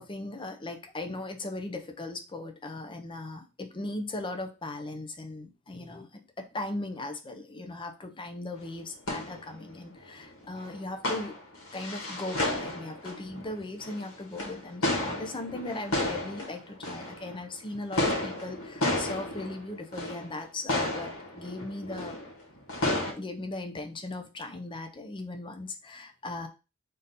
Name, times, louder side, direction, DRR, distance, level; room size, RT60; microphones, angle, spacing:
voice 1, 0.0-6.1 6.4-11.3 11.7-22.2 23.2-26.5, left 2 dB, 25° left, 5 dB, 0.5 m, -38 dB
sound 1, 8.6-8.7 8.9-17.6 17.9-20.4 20.7-23.1, left 1 dB, 80° left, 1.8 m, -32 dB
3.7 x 2.7 x 4.0 m, 0.30 s
head